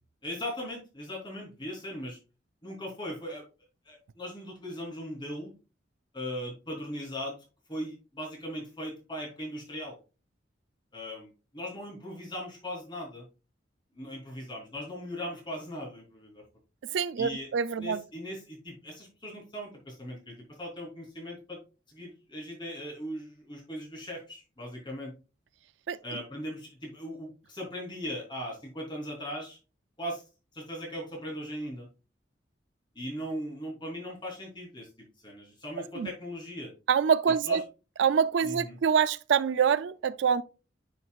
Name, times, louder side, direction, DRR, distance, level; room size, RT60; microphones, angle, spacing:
voice 1, 0.2-2.2 2.6-3.4 3.8-5.5 6.1-7.4 7.7-9.9 10.9-13.2 13.9-16.4 17.2-17.5 17.8-21.6 21.9-25.1 26.0-29.6 30.0-30.2 30.5-31.9 32.9-36.7 37.4-37.6 38.4-38.8, equal, 25° left, 3.2 m, -39 dB
voice 2, 16.9-18.0 25.9-26.0 36.0-36.1 36.9-37.6 38.0-40.4, right 7 dB, 70° right, 0.4 m, -25 dB
9.3 x 6.0 x 2.4 m
head